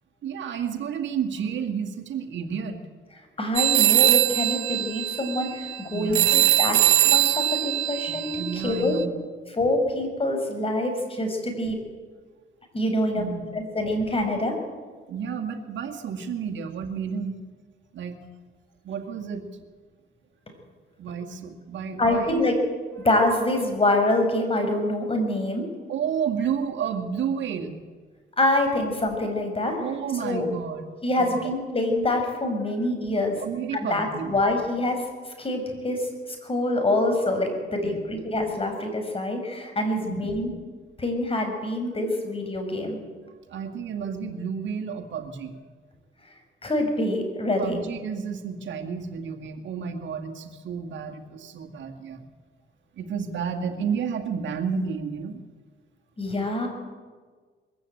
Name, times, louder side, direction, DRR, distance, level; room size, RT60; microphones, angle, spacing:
voice 1, 0.2-2.8 5.9-6.3 8.1-9.1 13.1-13.4 15.1-17.4 17.9-18.2 18.8-19.6 21.0-22.4 25.9-27.8 29.8-30.9 31.2-31.4 33.4-34.3 37.8-38.0 40.0-40.4 43.5-45.6 47.6-52.2 53.0-55.4, right 7 dB, 70° right, 4 dB, 2.2 m, -31 dB
voice 2, 3.4-6.8 7.0-9.0 9.6-11.8 12.7-14.5 22.0-22.5 23.0-25.7 28.4-29.8 30.2-30.5 31.0-33.4 33.7-35.0 35.4-40.5 41.0-43.0 46.6-47.8 56.2-56.7, left 1 dB, 30° left, 4 dB, 5.8 m, -25 dB
sound 1, 3.6-9.0, right 14 dB, 85° right, 1.2 m, -22 dB
22.0 x 15.0 x 9.0 m, 1.5 s
cardioid pair, 90°, 20 cm